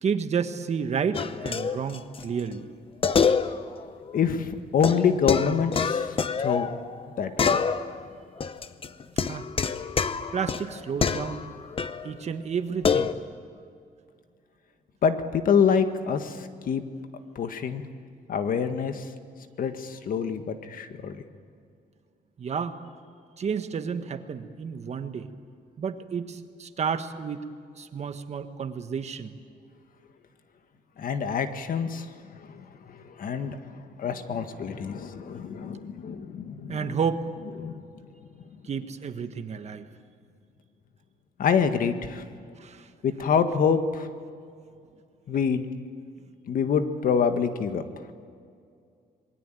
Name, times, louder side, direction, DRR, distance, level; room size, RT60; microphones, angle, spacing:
voice 1, 0.0-2.7 9.2-9.4 10.3-11.4 12.0-13.1 22.4-22.8 23.4-25.3 25.8-27.4 27.8-29.3 36.7-37.3 38.7-39.9 42.6-42.9, right 6 dB, 45° right, 9 dB, 1.5 m, -31 dB
sound 1, 1.1-2.2 2.5-2.6 3.0-4.2 4.8-7.1 7.4-8.1 8.4-12.1 12.8-13.1, left 6 dB, 35° left, 0.9 m, -26 dB
voice 2, 4.1-6.7 7.2-7.6 15.0-16.8 17.4-17.8 18.3-19.0 19.6-21.2 31.0-32.1 32.4-36.9 37.6-37.7 41.4-42.2 43.0-44.1 45.3-45.7 46.5-47.8, left 6 dB, 60° left, 8 dB, 1.7 m, -26 dB
27.0 x 22.0 x 9.2 m, 2.3 s
cardioid pair, 150°, 16 cm